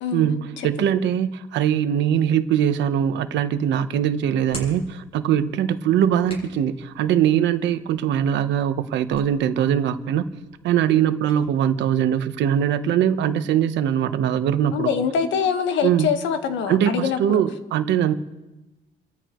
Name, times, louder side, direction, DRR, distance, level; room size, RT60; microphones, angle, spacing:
voice 1, 0.1-10.3 10.6-14.9 15.8-16.1 16.7-18.1, right 9 dB, 75° right, 1.0 m, -21 dB
Hands, 3.1-11.5, left 1 dB, 30° left, 7.5 m, -46 dB
voice 2, 14.7-17.4, left 6 dB, 85° left, 1.4 m, -24 dB
30.0 x 14.0 x 3.1 m
cardioid pair, 135°, 19 cm